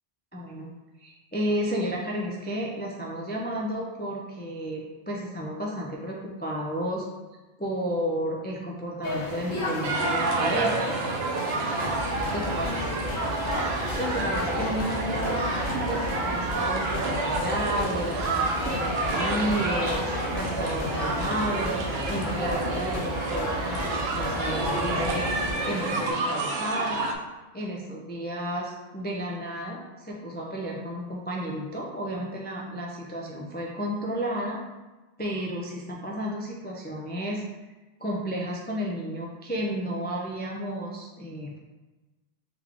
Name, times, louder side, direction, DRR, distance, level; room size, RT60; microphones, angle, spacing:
voice 1, 0.3-0.7 1.0-7.0 7.6-10.8 12.3-12.8 14.0-15.4 15.9-20.0 20.3-27.0 27.5-34.6 35.2-37.4 38.0-41.6, right 1 dB, 15° left, -2 dB, 0.3 m, -32 dB
sound 1, 9.0-26.1, left 1 dB, 50° left, 1.2 m, -32 dB
sound 2, 9.8-27.1, right 3 dB, 75° right, 0.8 m, -30 dB
sound 3, 11.4-25.5, left 2 dB, 90° left, 1.0 m, -37 dB
3.6 x 3.3 x 3.4 m, 1.2 s
omnidirectional pair, 1.1 m